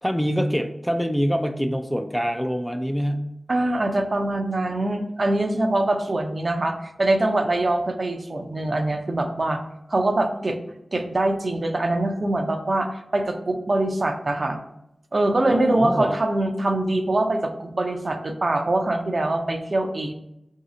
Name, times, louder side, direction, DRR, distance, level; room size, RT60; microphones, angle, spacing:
voice 1, 0.0-3.3 15.5-16.2, equal, 5° left, 6 dB, 0.3 m, -25 dB
voice 2, 3.5-9.6 9.9-10.6 10.9-14.6 15.1-20.1, right 2 dB, 50° right, 5 dB, 0.6 m, -23 dB
3.9 x 2.8 x 4.8 m, 0.84 s
wide cardioid pair, 65°, 0 cm